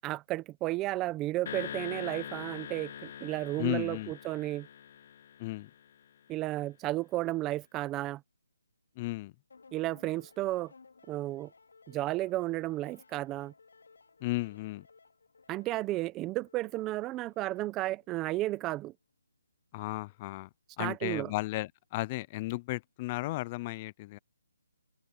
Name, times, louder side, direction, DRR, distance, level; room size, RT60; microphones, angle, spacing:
voice 1, 0.0-4.7 6.3-8.2 9.7-10.7 11.1-11.5 11.9-13.5 15.5-18.9 20.8-21.3, right 17 dB, 15° right, 0.8 m, -33 dB
sound 1, 1.5-5.9, left 9 dB, 40° left, 0.9 m, -43 dB
voice 2, 3.6-4.1 5.4-5.7 9.0-9.3 14.2-14.8 19.7-20.5 20.8-24.2, left 20 dB, 20° left, 0.4 m, -34 dB
sound 2, 9.5-18.9, left 4 dB, 75° left, 5.3 m, -60 dB
open air
hypercardioid pair, 165°, 0 cm